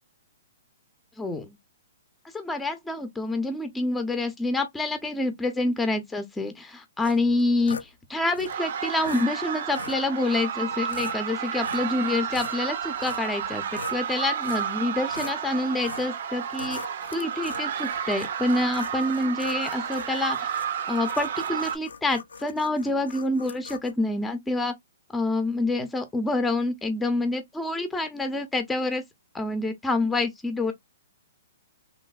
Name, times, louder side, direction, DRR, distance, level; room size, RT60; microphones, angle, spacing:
voice 1, 1.2-1.6 2.3-16.8 17.1-20.6 20.9-24.7 25.1-29.0 29.3-30.7, left 2 dB, 5° left, 0.6 m, -27 dB
sound 1, 7.0-7.9 8.3-8.5 9.0-9.3 9.7-10.0 10.7-11.2 11.6-12.0 12.3-14.0 14.4-14.7 15.1-15.4 15.8-16.1 16.5-23.9, left 5 dB, 90° left, 0.5 m, -41 dB
sound 2, 8.5-21.8, right 8 dB, 60° right, 0.5 m, -31 dB
3.2 x 2.6 x 2.2 m
hypercardioid pair, 135°, 0 cm